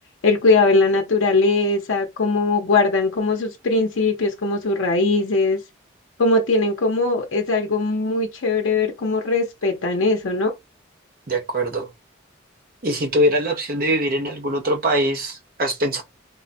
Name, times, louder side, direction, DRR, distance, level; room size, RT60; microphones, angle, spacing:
voice 1, 0.2-5.6 6.2-10.5, left 3 dB, 85° left, 0.6 m, -20 dB
voice 2, 11.3-11.9 12.8-16.0, equal, 45° right, 0.7 m, -22 dB
3.5 x 2.1 x 2.6 m
head